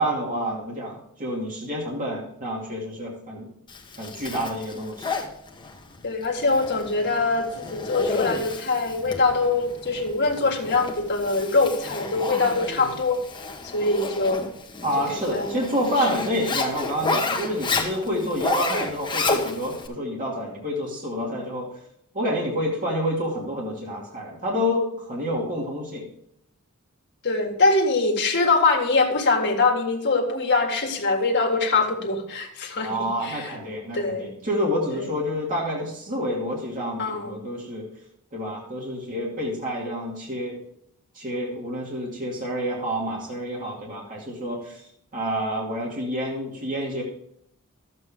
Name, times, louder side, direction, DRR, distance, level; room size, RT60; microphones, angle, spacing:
voice 1, 0.0-3.5 4.0-5.1 14.8-21.7 22.1-26.0 32.8-37.8 38.3-40.6 41.1-44.8 45.1-47.0, equal, 40° right, -3 dB, 2.4 m, -28 dB
Zipper (clothing), 3.7-19.9, left 3 dB, 20° left, 1.2 m, -31 dB
voice 2, 6.0-13.2 13.7-14.5 15.1-15.6 16.0-16.3 18.1-18.3 21.2-21.4 27.2-33.6 33.9-34.3 34.9-35.1 37.0-37.4, left 3 dB, 55° left, 1 dB, 1.8 m, -23 dB
12.5 x 7.8 x 3.6 m, 0.74 s
head